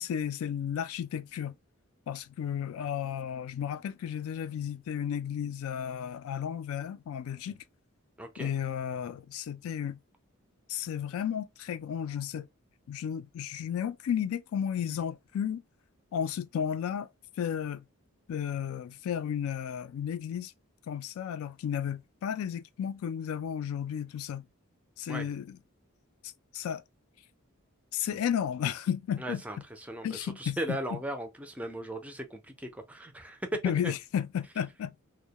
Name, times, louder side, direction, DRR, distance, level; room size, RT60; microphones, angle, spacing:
voice 1, 0.0-1.5 2.1-7.6 8.4-10.0 10.7-12.5 12.9-15.6 16.1-17.1 17.4-17.8 18.3-20.5 20.9-24.4 25.0-25.6 26.5-26.8 27.9-29.4 30.0-30.6 30.9-31.0 33.6-35.0, left 8 dB, 75° left, 0.3 m, -33 dB
voice 2, 8.2-8.5 25.1-25.3 29.2-33.5 33.8-33.9, right 1 dB, 5° right, 0.4 m, -38 dB
2.2 x 2.1 x 2.7 m
head